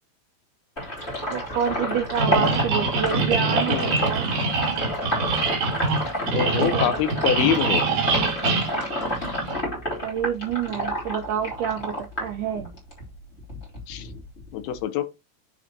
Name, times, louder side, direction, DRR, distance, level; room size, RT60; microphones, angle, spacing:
Sink (filling or washing), 0.8-13.0 13.4-14.8, equal, 15° left, 3.0 m, -29 dB
voice 1, 1.2-4.3 6.6-6.9 10.0-11.9 12.2-12.7, right 8 dB, 90° right, 1.8 m, -28 dB
sound 1, 2.2-9.6, right 4 dB, 60° right, 2.9 m, -25 dB
voice 2, 3.7-4.0 6.3-7.9 13.9-14.1 14.5-15.1, left 9 dB, 80° left, 2.6 m, -25 dB
8.8 x 5.0 x 2.9 m
omnidirectional pair, 4.6 m